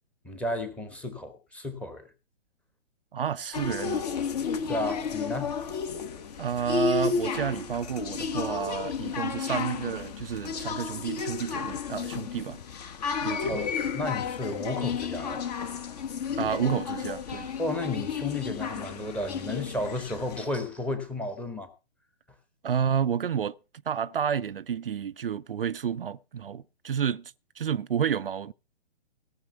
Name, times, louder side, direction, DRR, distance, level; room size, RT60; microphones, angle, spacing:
voice 1, 0.2-2.1 4.7-5.5 13.5-15.5 17.6-21.7, left 2 dB, 5° left, 1.1 m, -33 dB
voice 2, 3.1-4.0 6.4-12.6 13.2-13.6 16.4-17.5 22.6-23.6 23.9-28.5, right 8 dB, 55° right, 0.5 m, -30 dB
sound 1, 3.5-20.5, left 6 dB, 35° left, 1.4 m, -32 dB
17.0 x 6.1 x 5.7 m
figure-of-eight pair, 130°, 34 cm